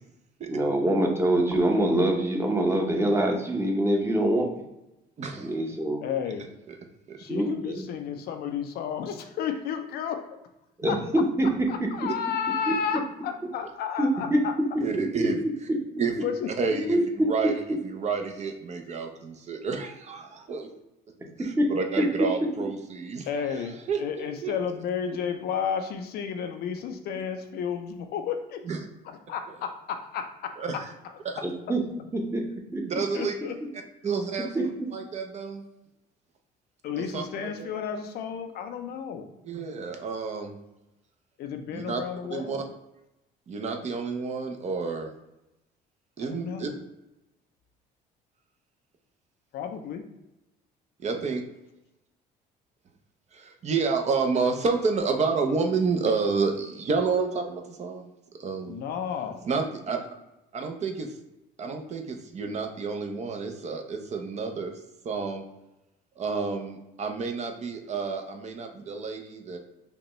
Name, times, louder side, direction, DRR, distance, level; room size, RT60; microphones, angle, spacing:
voice 1, 0.5-4.6 5.4-6.0 7.3-7.8 10.8-11.9 12.7-12.8 14.0-14.4 16.9-17.3 21.6-21.7 31.4-31.8 32.1-32.4 32.7-32.8 34.0-34.1 34.5-34.6, right 1 dB, 15° right, 1 dB, 0.8 m, -24 dB
voice 2, 5.2-5.5 7.1-7.2 14.8-15.4 16.0-16.1 16.6-17.0 17.3-20.7 21.8-25.1 28.6-28.8 30.6-30.9 31.2-31.4 32.9-33.3 34.0-34.5 34.9-35.6 37.0-37.7 39.4-40.6 41.7-42.0 42.3-42.6 43.5-45.1 46.2-46.7 51.0-51.4 53.3-58.1 58.4-58.8 59.4-60.1 60.5-61.1 61.6-64.7 65.0-65.4 66.2-69.6, right 4 dB, 40° right, 4 dB, 0.6 m, -30 dB
voice 3, 6.0-6.4 7.2-10.3 10.9-11.0 11.9-14.5 16.2-16.5 23.3-28.6 29.0-30.6 33.1-33.6 36.8-39.3 41.4-42.7 46.2-46.7 49.5-50.0 58.7-59.5, left 7 dB, 65° left, 6 dB, 0.5 m, -32 dB
5.0 x 2.2 x 3.1 m, 0.92 s
cardioid pair, 110°, 17 cm